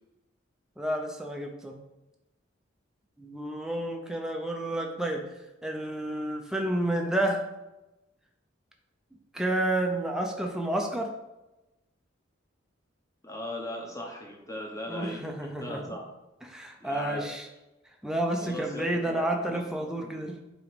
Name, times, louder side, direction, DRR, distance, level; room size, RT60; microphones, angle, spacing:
voice 1, 0.8-1.8 3.2-5.2 5.6-7.4 9.3-11.1 14.9-16.0 16.4-17.5 18.0-20.4, right 1 dB, 5° right, 1 dB, 0.6 m, -30 dB
voice 2, 13.2-16.0 16.8-17.3 18.4-20.2, equal, 15° left, 1 dB, 1.0 m, -38 dB
7.8 x 3.1 x 5.2 m, 0.99 s
head